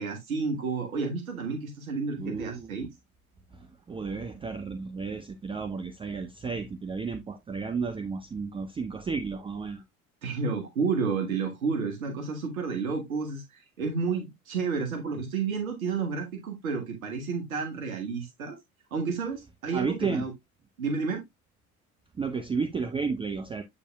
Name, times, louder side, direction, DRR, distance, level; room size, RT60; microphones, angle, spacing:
voice 1, 0.0-2.9 10.2-18.6 18.9-20.3 20.8-21.2, right 5 dB, 70° right, 1.5 m, -31 dB
voice 2, 2.2-2.9 3.5-9.8 19.7-20.2 22.2-23.6, right 5 dB, 10° right, 0.6 m, -32 dB
8.2 x 5.7 x 2.3 m
figure-of-eight pair, 70°, 43 cm